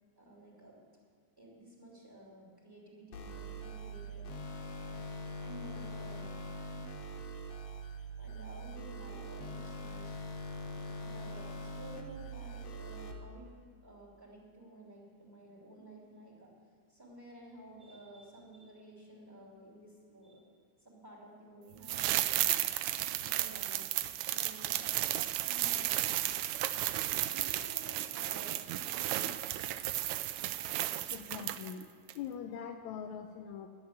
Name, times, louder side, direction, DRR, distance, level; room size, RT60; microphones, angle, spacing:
voice 1, 0.2-0.8 1.4-4.5 5.4-6.3 8.2-10.2 11.0-13.5 13.8-16.5 16.9-20.5 20.8-22.6 23.2-23.8 24.3-24.8 25.4-26.0 27.3-28.5 28.8-29.3, right 1 dB, 5° right, -4 dB, 2.8 m, -52 dB
sound 1, 3.1-13.1, right 1 dB, 65° left, 1.8 m, -43 dB
sound 2, 21.8-31.8 32.1-32.2, right 14 dB, 80° right, 1.7 m, -33 dB
voice 2, 31.1-31.9 32.2-33.7, left 8 dB, 80° left, 4 dB, 1.9 m, -42 dB
11.0 x 8.7 x 9.6 m, 2.1 s
omnidirectional pair, 3.5 m